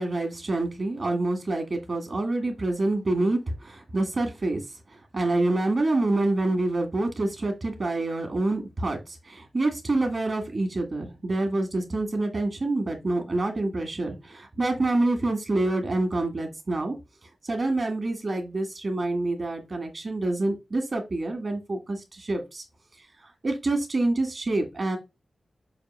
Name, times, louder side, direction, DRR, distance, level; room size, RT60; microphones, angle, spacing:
voice 1, 0.0-4.6 5.1-17.0 17.4-22.6 23.4-25.0, right 2 dB, 40° right, 5 dB, 1.7 m, -27 dB
6.5 x 2.7 x 5.4 m, 0.24 s
wide cardioid pair, 155°, 0 cm